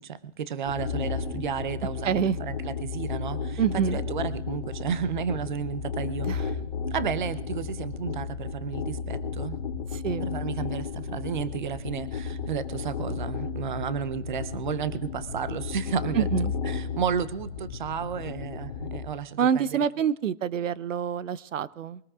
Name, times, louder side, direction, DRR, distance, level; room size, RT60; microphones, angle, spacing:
voice 1, 0.0-6.6 6.9-9.6 10.2-16.2 16.7-19.6, right 7 dB, 40° right, 16 dB, 0.6 m, -32 dB
sound 1, 0.7-19.1, left 5 dB, 40° left, 1.3 m, -33 dB
voice 2, 2.0-2.4 3.6-4.0 6.3-6.4 9.9-10.3 16.1-16.5 19.4-22.0, right 8 dB, 85° right, 18 dB, 0.8 m, -26 dB
23.0 x 18.5 x 2.4 m, 0.84 s
hypercardioid pair, 175°, 37 cm